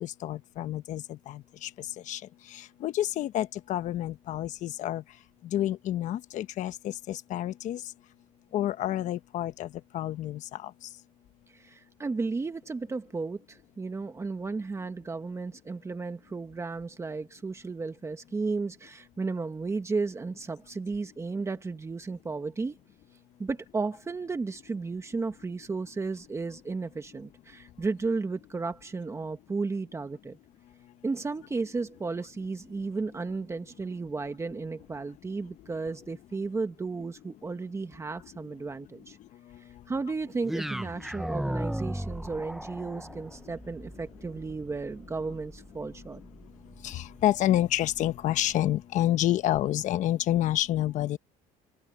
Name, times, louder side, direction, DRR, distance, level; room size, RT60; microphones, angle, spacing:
voice 1, 0.0-1.7 2.1-2.2 2.8-5.0 5.5-7.8 8.5-9.7 9.9-10.4 46.8-51.2, left 13 dB, 55° left, 1.1 m, -28 dB
voice 2, 11.5-22.8 23.4-30.4 31.0-39.2 39.6-46.2, right 4 dB, 20° right, 1.4 m, -34 dB
sound 1, 40.4-48.7, right 1 dB, ahead, 0.7 m, -38 dB
open air
cardioid pair, 110°, 15 cm